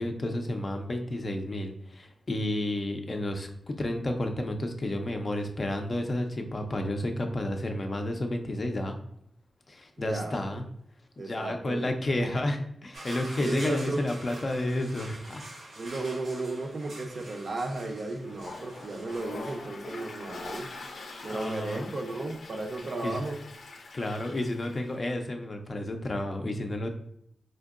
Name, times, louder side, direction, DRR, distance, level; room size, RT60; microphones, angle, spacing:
voice 1, 0.0-9.0 9.7-10.6 11.2-15.4 20.8-21.9 23.0-23.2 23.9-26.9, left 1 dB, 35° left, 4 dB, 0.4 m, -31 dB
voice 2, 10.0-10.6 11.2-12.2 13.4-14.1 15.8-20.7 21.2-23.4, right 2 dB, 50° right, 3 dB, 0.5 m, -34 dB
sound 1, 12.9-21.6, right 1 dB, 85° right, 1.0 m, -46 dB
Toilet flush, 18.2-25.0, left 3 dB, 90° left, 0.5 m, -44 dB
4.4 x 2.6 x 2.4 m, 0.69 s
wide cardioid pair, 170°, 0 cm